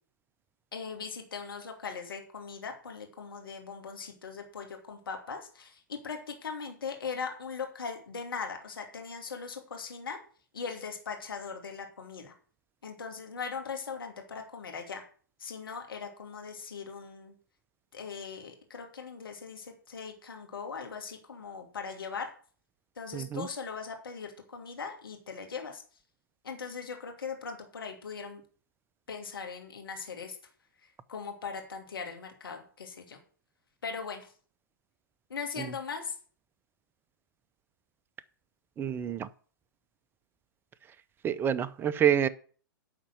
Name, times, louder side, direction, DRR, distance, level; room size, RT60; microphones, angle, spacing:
voice 1, 0.7-10.2 10.5-12.3 12.8-15.0 15.4-17.3 17.9-22.3 23.0-25.8 26.4-28.4 29.1-30.4 30.8-33.2 33.8-34.3 35.3-36.2, left 5 dB, 75° left, 2.6 m, -40 dB
voice 2, 23.1-23.5 38.8-39.3 41.2-42.3, right 9 dB, 20° right, 0.6 m, -27 dB
11.0 x 4.2 x 7.7 m
hypercardioid pair, 115°, 12 cm